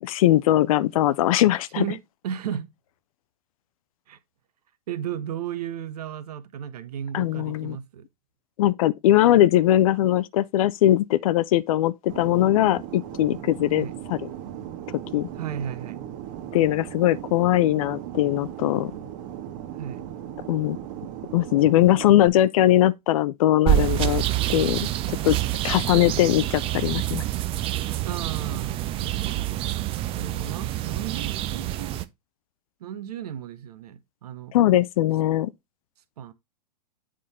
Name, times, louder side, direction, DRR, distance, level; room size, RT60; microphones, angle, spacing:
voice 1, 0.0-1.8 7.1-7.8 8.6-14.2 15.1-15.3 16.5-18.9 20.5-20.8 21.3-24.2 24.5-25.4 25.6-27.2 34.5-35.5, left 13 dB, 60° left, 0.5 m, -20 dB
voice 2, 1.8-2.7 4.1-4.2 4.9-8.1 13.8-14.0 15.4-16.0 19.8-20.0 28.0-29.6 30.1-32.0 32.8-34.5 36.2-36.3, right 9 dB, 70° right, 1.0 m, -34 dB
Fixed-wing aircraft airplane, 12.1-22.3, right 10 dB, 50° right, 1.7 m, -37 dB
sound 1, 23.7-32.1, right 14 dB, 25° right, 0.5 m, -27 dB
7.6 x 3.8 x 4.2 m
hypercardioid pair, 125°, 20 cm